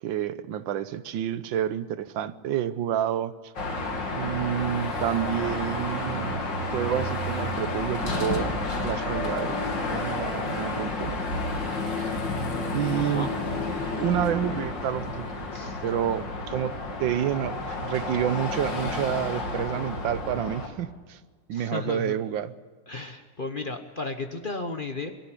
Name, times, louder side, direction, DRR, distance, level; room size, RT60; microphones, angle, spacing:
voice 1, 0.0-3.5 4.2-6.4 6.7-9.6 9.9-11.1 12.0-12.1 12.7-13.3 14.0-15.3 15.8-16.7 17.0-21.2 21.5-22.5, right 10 dB, 85° right, 14 dB, 1.6 m, -29 dB
Car passing by / Traffic noise roadway noise / Engine, 3.6-20.7, left 2 dB, 70° left, 3.2 m, -30 dB
voice 2, 13.0-13.3 15.5-15.8 21.5-22.2 22.9-25.1, left 3 dB, 35° left, 6 dB, 1.0 m, -34 dB
22.5 x 13.5 x 9.9 m, 1.5 s
omnidirectional pair, 2.1 m